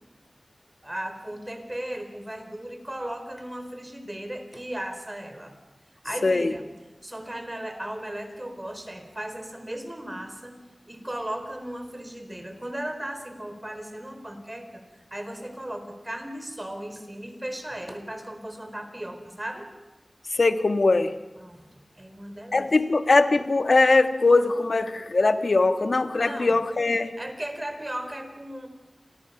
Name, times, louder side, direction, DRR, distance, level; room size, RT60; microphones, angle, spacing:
voice 1, 0.8-5.5 6.0-6.7 7.0-10.6 10.9-19.7 21.4-22.7 26.2-26.6 27.1-28.7, right 1 dB, 25° right, 6 dB, 4.5 m, -36 dB
voice 2, 6.2-6.5 20.3-21.2 22.5-27.2, left 3 dB, 75° left, 9 dB, 1.4 m, -21 dB
29.5 x 24.5 x 5.9 m, 1.1 s
wide cardioid pair, 55°, 0 cm